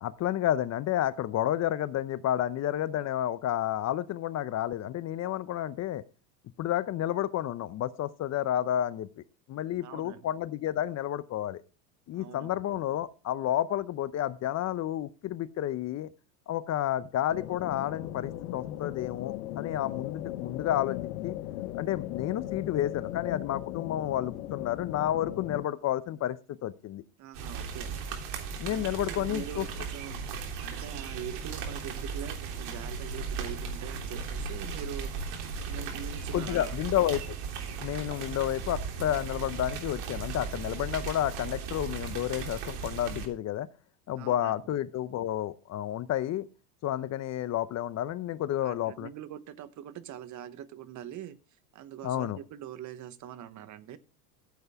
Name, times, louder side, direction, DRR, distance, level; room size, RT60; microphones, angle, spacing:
voice 1, 0.0-6.0 6.6-9.2 9.5-11.6 12.1-16.1 16.5-21.4 21.7-27.0 28.6-29.6 36.3-37.2 37.8-43.7 44.1-46.4 46.8-49.1 52.0-52.4, left 12 dB, 35° left, 16 dB, 0.8 m, -30 dB
voice 2, 9.8-10.2 12.1-12.6 27.2-28.0 28.6-30.2 30.6-36.8 44.2-44.5 48.6-54.0, right 10 dB, 40° right, 14 dB, 1.1 m, -43 dB
sound 1, 17.3-25.6, left 14 dB, 70° left, 1.2 m, -38 dB
sound 2, 27.3-43.3, right 5 dB, 55° right, 3.3 m, -37 dB
15.0 x 7.9 x 3.5 m, 0.33 s
hypercardioid pair, 100°, 47 cm